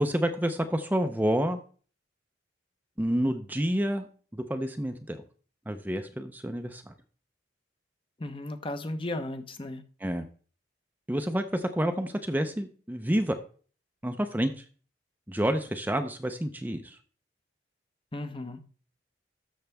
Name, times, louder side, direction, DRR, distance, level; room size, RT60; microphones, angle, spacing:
voice 1, 0.0-1.6 3.0-5.2 5.7-6.9 10.0-10.3 11.1-13.4 14.0-14.6 15.3-17.0, equal, 10° right, 0.6 m, -29 dB
voice 2, 8.2-9.8 18.1-18.6, left 1 dB, 30° left, 0.9 m, -35 dB
12.5 x 6.6 x 3.5 m
head